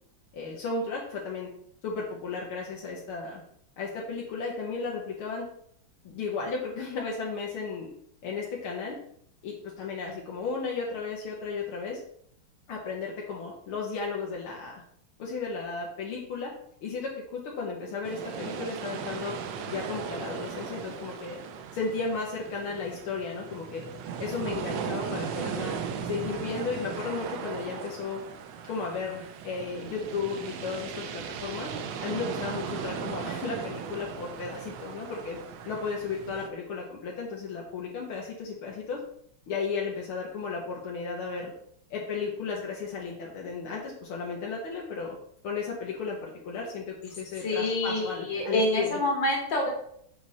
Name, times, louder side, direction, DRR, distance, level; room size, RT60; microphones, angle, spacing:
voice 1, 0.3-1.5 1.8-3.4 3.8-5.5 6.0-7.9 8.2-9.0 9.4-12.0 12.7-14.8 15.2-16.5 16.8-19.3 19.7-21.4 21.7-23.8 24.2-25.7 26.0-28.2 28.7-31.7 32.0-35.4 35.7-39.0 39.5-41.5 41.9-45.2 45.4-49.0, left 4 dB, 85° left, -2 dB, 1.9 m, -34 dB
sound 1, 18.0-36.5, right 7 dB, 70° right, 1.3 m, -37 dB
voice 2, 47.4-49.7, left 2 dB, 60° left, -1 dB, 2.6 m, -27 dB
7.1 x 4.9 x 4.1 m, 0.68 s
omnidirectional pair, 2.3 m